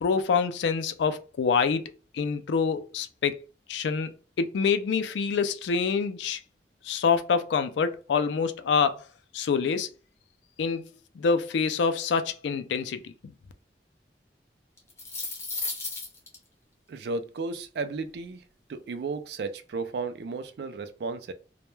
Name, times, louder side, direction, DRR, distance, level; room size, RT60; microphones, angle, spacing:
voice 1, 0.0-3.4 3.7-4.1 4.4-6.4 6.8-9.0 9.3-9.9 10.6-10.9 11.2-13.3, left 5 dB, 90° left, 0.3 m, -26 dB
sound 1, 14.8-16.3, left 3 dB, 15° left, 0.5 m, -33 dB
voice 2, 16.9-18.4 18.7-21.3, right 4 dB, 70° right, 0.3 m, -34 dB
2.2 x 2.1 x 3.0 m
head